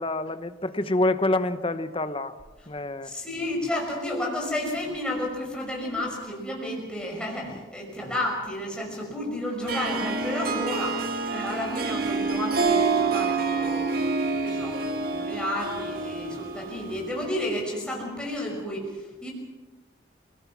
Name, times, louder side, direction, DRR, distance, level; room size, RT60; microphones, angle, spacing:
voice 1, 0.0-2.4 2.7-3.1 7.5-7.6, left 2 dB, 30° left, 12 dB, 1.0 m, -27 dB
voice 2, 3.0-19.3, left 1 dB, 5° left, -1 dB, 5.6 m, -32 dB
Harp, 9.6-17.4, right 4 dB, 50° right, 2.2 m, -27 dB
29.5 x 19.0 x 6.1 m, 1.2 s
head